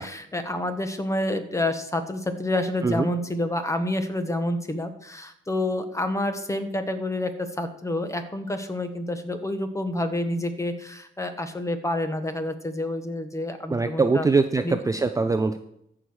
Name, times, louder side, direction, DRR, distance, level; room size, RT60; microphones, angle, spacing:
voice 1, 0.0-14.3 14.6-14.7, left 1 dB, 15° left, 8 dB, 1.4 m, -28 dB
voice 2, 13.7-15.6, right 4 dB, 15° right, 8 dB, 0.6 m, -22 dB
14.0 x 4.9 x 6.3 m, 0.75 s
cardioid pair, 90°, 20 cm